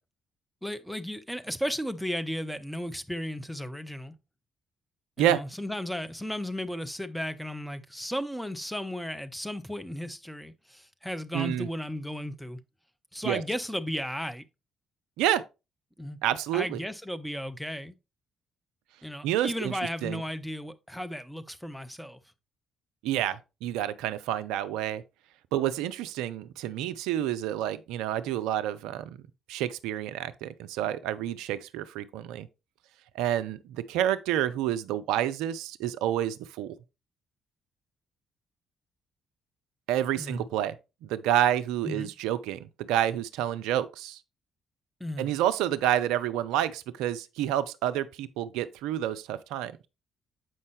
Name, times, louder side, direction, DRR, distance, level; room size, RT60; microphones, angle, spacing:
voice 1, 0.6-4.1 5.2-12.6 13.1-14.4 16.0-16.2 16.5-17.9 19.0-22.2 40.2-40.5 41.8-42.1 45.0-45.4, equal, ahead, 0.7 m, -35 dB
voice 2, 11.3-11.7 13.2-13.4 15.2-15.4 16.2-16.8 19.2-20.2 23.0-25.0 25.5-29.2 29.5-32.5 33.1-36.7 39.9-40.7 41.0-44.2 45.2-49.9, right 11 dB, 65° right, 0.4 m, -29 dB
7.6 x 5.4 x 3.2 m
figure-of-eight pair, 45°, 0 cm